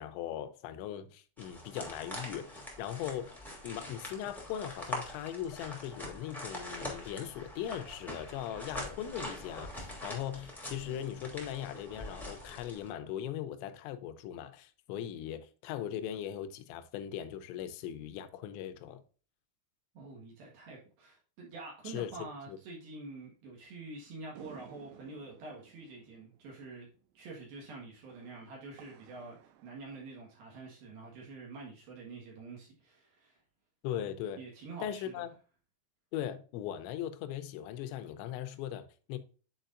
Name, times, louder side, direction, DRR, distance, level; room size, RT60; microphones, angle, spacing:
voice 1, 0.0-3.3 3.6-19.0 21.9-22.1 22.5-22.6 33.8-34.4 34.8-35.3 36.1-39.2, left 10 dB, 85° left, 3.0 m, -39 dB
sound 1, 1.4-12.9, left 1 dB, ahead, 1.0 m, -43 dB
voice 2, 19.9-26.9 27.1-29.4 29.6-33.4 34.4-35.2, right 3 dB, 65° right, 3.1 m, -47 dB
sound 2, 24.4-30.9, right 10 dB, 80° right, 2.4 m, -57 dB
10.0 x 4.8 x 2.5 m
omnidirectional pair, 5.2 m